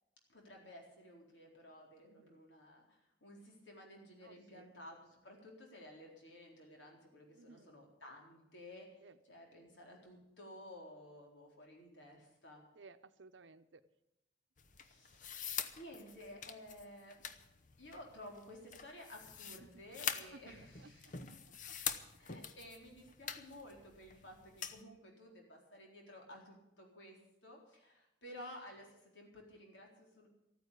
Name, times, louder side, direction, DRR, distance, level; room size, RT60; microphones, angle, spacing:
voice 1, 0.3-9.0 9.3-12.6 14.8-15.4 15.8-17.3 17.8-21.3 22.2-30.3, left 1 dB, 85° left, 0 dB, 4.0 m, -54 dB
voice 2, 2.0-2.4 4.2-4.7 7.3-7.8 9.0-9.2 12.7-13.8 19.6-19.7 20.3-21.1 21.7-21.8 28.2-28.3, right 3 dB, 85° right, 10 dB, 0.8 m, -59 dB
sound 1, 14.6-24.8, left 7 dB, 45° left, 0.8 m, -45 dB
14.0 x 9.4 x 8.3 m, 0.90 s
head